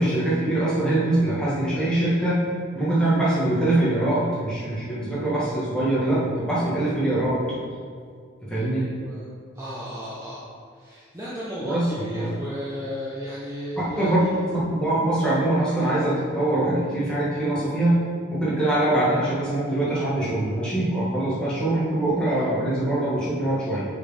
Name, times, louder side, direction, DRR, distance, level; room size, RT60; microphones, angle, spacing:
voice 1, 0.0-2.4 2.8-7.4 8.5-8.8 11.6-11.9 12.1-12.4 14.0-14.2 14.7-18.0 18.3-23.8, right 1 dB, 5° left, -9 dB, 1.7 m, -23 dB
voice 2, 8.7-9.3 9.5-10.5 10.7-14.5, equal, 15° right, -9 dB, 0.8 m, -34 dB
6.4 x 4.4 x 4.9 m, 2.1 s
head